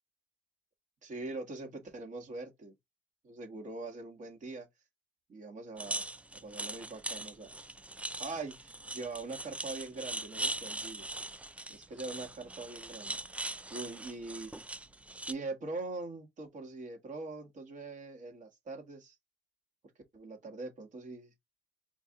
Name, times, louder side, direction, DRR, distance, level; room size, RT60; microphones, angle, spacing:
voice 1, 1.0-2.7 3.2-4.7 5.3-6.1 6.3-7.6 8.2-11.1 11.7-13.2 13.7-14.5 15.3-19.2 20.1-21.3, right 3 dB, 45° right, 1.6 m, -42 dB
sound 1, 5.8-15.3, right 2 dB, 5° right, 0.4 m, -40 dB
4.6 x 2.7 x 3.6 m
cardioid pair, 110°, 17 cm